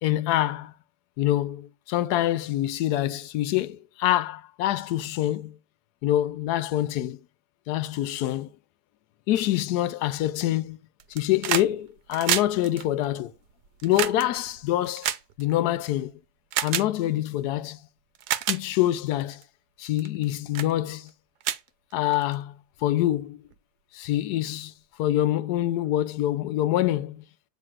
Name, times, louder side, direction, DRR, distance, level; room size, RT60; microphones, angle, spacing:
voice 1, 0.0-0.7 1.2-5.6 6.0-7.2 7.7-8.5 9.3-10.8 11.1-13.3 13.8-15.1 15.4-16.1 16.6-17.8 18.5-19.4 19.8-21.1 21.9-23.4 23.9-24.7 25.0-27.2, left 13 dB, 80° left, 1.2 m, -25 dB
sound 1, 11.0-11.7 12.0-15.9 16.5-16.9 17.7-17.8 18.2-18.6 19.2-19.4 20.0-20.2 20.5-20.7 21.1-21.2 21.4-22.4 23.5-23.6, right 11 dB, 85° right, 1.2 m, -29 dB
7.7 x 3.1 x 6.1 m
omnidirectional pair, 1.7 m